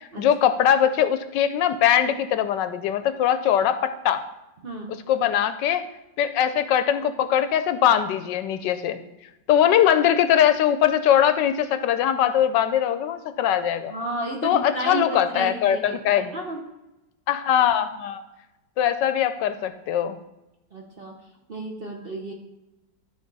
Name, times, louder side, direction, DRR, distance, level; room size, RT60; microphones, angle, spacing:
voice 1, 0.0-4.2 5.1-5.8 6.2-9.0 9.5-13.9 14.4-16.3 17.3-18.2 18.8-20.2, left 10 dB, 75° left, 11 dB, 1.2 m, -21 dB
voice 2, 4.6-5.0 13.9-16.6 20.7-21.2 21.5-22.3, right 2 dB, 45° right, 0 dB, 0.8 m, -32 dB
12.0 x 4.9 x 4.0 m, 0.96 s
omnidirectional pair, 2.0 m